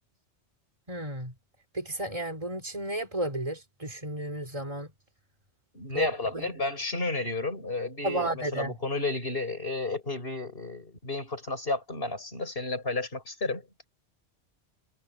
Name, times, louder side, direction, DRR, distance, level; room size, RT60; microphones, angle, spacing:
voice 1, 0.9-1.3 1.7-4.9 5.9-6.1 6.3-6.5 8.0-8.7, right 1 dB, 30° right, 3.9 m, -32 dB
voice 2, 5.7-13.7, left 2 dB, 55° left, 6.4 m, -32 dB
omnidirectional pair, 1.2 m